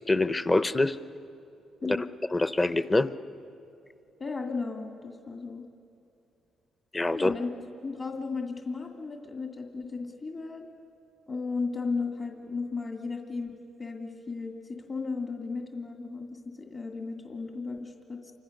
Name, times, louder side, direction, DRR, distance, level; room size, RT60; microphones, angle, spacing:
voice 1, 0.1-1.0 1.8-2.0 2.3-3.1 6.9-7.3, left 2 dB, 20° left, 13 dB, 0.8 m, -25 dB
voice 2, 4.2-5.6 7.1-7.5 7.8-10.7 11.3-18.3, left 4 dB, 40° left, 2 dB, 2.1 m, -35 dB
28.5 x 25.0 x 6.5 m, 2.7 s
cardioid pair, 90°, 0 cm